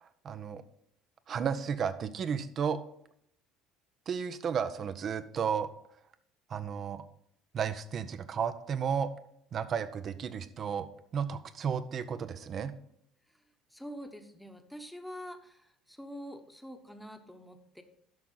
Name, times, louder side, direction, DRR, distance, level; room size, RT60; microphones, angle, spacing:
voice 1, 0.2-0.6 1.3-2.8 4.1-5.7 6.5-7.0 7.5-9.1 9.5-10.9 11.1-12.7, right 7 dB, 45° right, 12 dB, 0.7 m, -33 dB
voice 2, 13.7-17.8, equal, ahead, 7 dB, 1.1 m, -45 dB
10.5 x 6.0 x 3.9 m, 0.73 s
hypercardioid pair, 65°, 0 cm